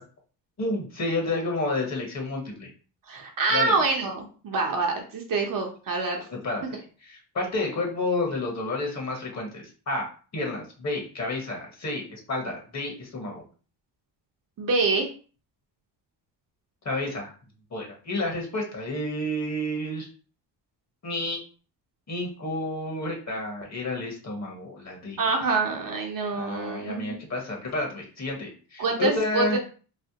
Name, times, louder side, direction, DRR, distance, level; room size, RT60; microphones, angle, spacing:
voice 1, 0.6-2.7 3.5-3.7 6.3-6.6 7.0-13.4 16.8-17.3 17.7-20.1 21.0-21.4 22.1-25.2 26.3-29.6, left 2 dB, 35° left, 0 dB, 1.3 m, -30 dB
voice 2, 3.1-6.3 14.6-15.1 25.2-27.2 28.8-29.6, right 3 dB, 45° right, 1 dB, 0.8 m, -26 dB
3.2 x 2.1 x 2.8 m, 0.38 s
cardioid pair, 80°, 45 cm